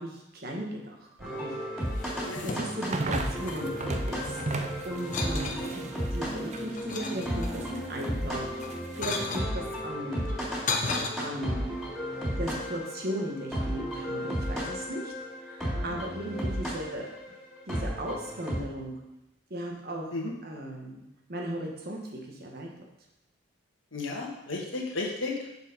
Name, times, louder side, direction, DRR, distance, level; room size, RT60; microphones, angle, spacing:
voice 1, 0.0-1.5 2.4-4.4 4.8-8.4 8.9-10.3 11.2-11.7 12.4-15.1 15.4-17.1 17.7-19.0 19.5-22.7, right 1 dB, 50° right, 0 dB, 1.4 m, -37 dB
sound 1, 1.2-18.6, equal, ahead, 3.1 m, -34 dB
sound 2, 1.9-2.9 3.1-4.5 5.0-5.6 6.2-7.7 8.5-9.5 10.2-11.1, left 4 dB, 40° left, 0.8 m, -35 dB
sound 3, 2.4-7.1 7.4-9.4, right 3 dB, 35° right, 0.5 m, -37 dB
voice 2, 23.9-25.3, left 3 dB, 75° left, -2 dB, 1.6 m, -34 dB
6.8 x 5.0 x 5.2 m, 0.89 s
head